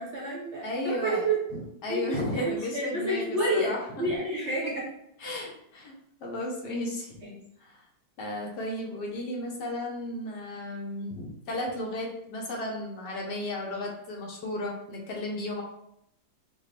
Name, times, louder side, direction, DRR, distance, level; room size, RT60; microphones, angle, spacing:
voice 1, 0.0-1.4 1.9-4.9 7.2-7.3, right 1 dB, 50° right, -5 dB, 0.9 m, -29 dB
voice 2, 0.6-3.2 3.5-3.8 4.1-4.2 5.2-5.9 6.2-7.2 7.6-7.9 8.2-15.6, left 1 dB, 70° left, -1 dB, 1.4 m, -34 dB
5.3 x 2.1 x 3.2 m, 0.77 s
omnidirectional pair, 2.0 m